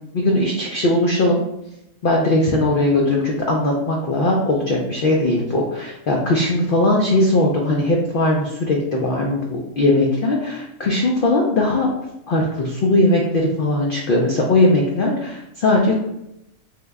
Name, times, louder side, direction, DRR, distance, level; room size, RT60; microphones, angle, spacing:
voice 1, 0.1-1.4 2.0-11.9 12.3-16.0, left 2 dB, 85° left, 0 dB, 0.4 m, -19 dB
3.3 x 2.1 x 3.4 m, 0.84 s
omnidirectional pair, 1.4 m